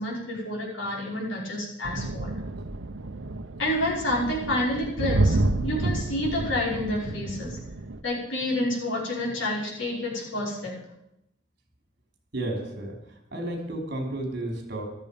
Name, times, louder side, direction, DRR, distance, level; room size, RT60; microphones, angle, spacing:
voice 1, 0.0-2.3 3.6-7.6 8.0-10.7, left 1 dB, 80° left, -4 dB, 5.5 m, -29 dB
sound 1, 1.8-8.0, right 2 dB, 85° right, 0.9 m, -29 dB
voice 2, 12.3-12.9 13.3-14.9, right 1 dB, 60° right, 2 dB, 3.6 m, -32 dB
14.0 x 13.5 x 5.3 m, 0.86 s
head